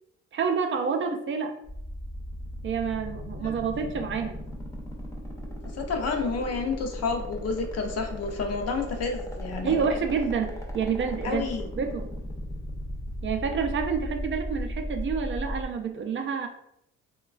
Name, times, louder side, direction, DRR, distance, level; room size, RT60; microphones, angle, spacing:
voice 1, 0.3-1.5 2.6-4.4 9.6-11.5 11.8-12.1 13.2-16.5, right 6 dB, 40° right, 5 dB, 0.4 m, -28 dB
sound 1, 1.6-15.6, equal, 10° left, 0.6 m, -36 dB
voice 2, 5.7-10.0 11.2-11.7, left 4 dB, 55° left, 4 dB, 0.6 m, -30 dB
3.0 x 2.2 x 2.3 m, 0.79 s
cardioid pair, 90°, 30 cm